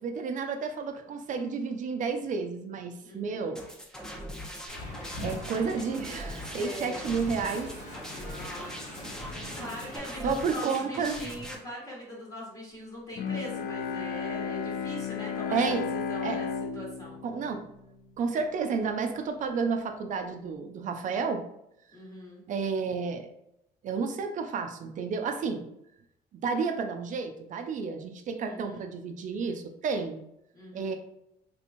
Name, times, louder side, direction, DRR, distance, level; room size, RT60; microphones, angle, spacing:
voice 1, 0.0-3.7 5.2-7.7 10.2-11.2 15.5-15.8 16.2-16.4 17.2-17.7 18.2-21.4 22.5-23.3 23.8-25.7 26.4-30.2 30.7-31.0, right 5 dB, 50° right, 6 dB, 0.4 m, -31 dB
voice 2, 3.0-3.6 5.6-5.9 6.5-7.1 8.1-16.5 16.7-17.2 21.9-22.4 28.4-28.9 30.5-31.0, equal, 20° left, -4 dB, 1.1 m, -42 dB
sound 1, 3.5-11.6, equal, 5° left, 0.5 m, -41 dB
Wind, 4.7-10.0, left 1 dB, 45° left, 1.3 m, -42 dB
Bowed string instrument, 13.2-18.4, left 6 dB, 60° left, 0.4 m, -34 dB
3.4 x 2.9 x 2.6 m, 0.79 s
cardioid pair, 110°, 17 cm